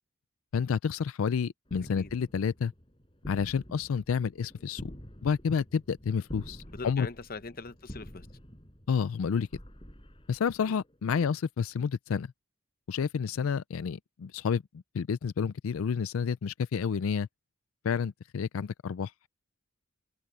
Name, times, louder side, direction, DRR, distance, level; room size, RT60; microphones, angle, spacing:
voice 1, 0.5-2.7 3.3-4.9 5.2-7.1 8.9-9.5 10.3-12.3 12.9-17.3 17.8-19.3, left 6 dB, 80° left, 0.4 m, -30 dB
sound 1, 1.7-11.0, equal, 25° left, 6.5 m, -48 dB
voice 2, 6.7-8.3 10.6-10.8 11.1-11.3, left 4 dB, 45° left, 0.8 m, -42 dB
open air
head